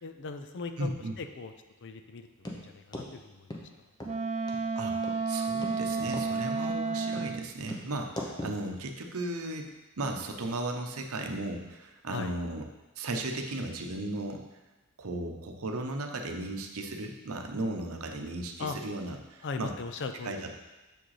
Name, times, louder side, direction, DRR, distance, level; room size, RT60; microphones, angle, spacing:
voice 1, 0.0-1.5 1.8-3.7 12.1-12.4 18.6-18.8 19.4-20.6, left 4 dB, 55° left, 8 dB, 0.5 m, -39 dB
voice 2, 0.8-1.2 4.8-5.0 5.3-9.7 10.0-12.7 13.0-14.4 15.0-19.7 20.2-20.6, right 2 dB, 75° right, 4 dB, 0.8 m, -35 dB
sound 1, 2.4-2.6 2.9-3.1 3.5-3.6 4.0-4.1 4.5-4.6 5.0-5.2 5.6-5.8 6.1-6.3 6.6-6.8 7.1-7.3 7.7-7.8 8.2-8.6, left 1 dB, 20° left, 0.8 m, -38 dB
Wind instrument woodwind instrument, 4.0-7.5, right 4 dB, 30° right, 0.3 m, -31 dB
6.8 x 6.2 x 3.2 m, 1.1 s
head